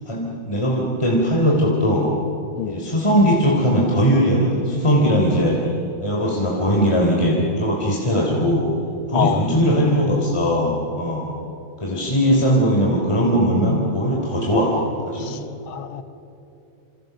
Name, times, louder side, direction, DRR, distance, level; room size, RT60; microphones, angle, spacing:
voice 1, 0.1-2.1 2.6-5.6 6.0-8.6 9.1-10.7 11.0-11.3 11.8-14.7 15.0-15.4, equal, 15° left, -2 dB, 3.3 m, -19 dB
voice 2, 9.1-9.5 15.2-15.4 15.7-16.0, left 8 dB, 85° left, 10 dB, 2.0 m, -25 dB
28.5 x 27.0 x 6.8 m, 2.8 s
omnidirectional pair, 2.2 m